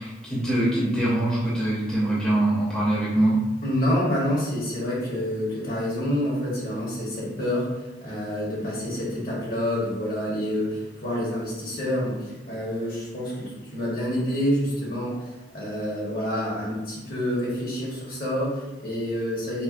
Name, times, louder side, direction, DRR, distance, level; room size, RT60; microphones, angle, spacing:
voice 1, 0.0-3.4, right 1 dB, 5° left, -9 dB, 0.6 m, -23 dB
voice 2, 3.6-19.6, equal, 55° left, -5 dB, 1.1 m, -28 dB
4.2 x 2.0 x 2.4 m, 1.1 s
head